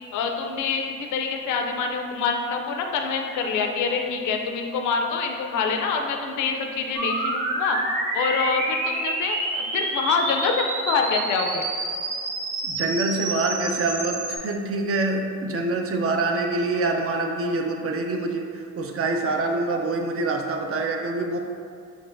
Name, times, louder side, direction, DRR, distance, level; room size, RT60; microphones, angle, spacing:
voice 1, 0.1-7.8 8.1-11.7, left 5 dB, 75° left, 3 dB, 0.4 m, -26 dB
sound 1, 6.9-14.4, right 2 dB, 85° right, 0.8 m, -28 dB
voice 2, 12.6-21.4, right 2 dB, 50° right, 3 dB, 0.5 m, -25 dB
6.0 x 2.4 x 2.5 m, 2.4 s
cardioid pair, 90°, 30 cm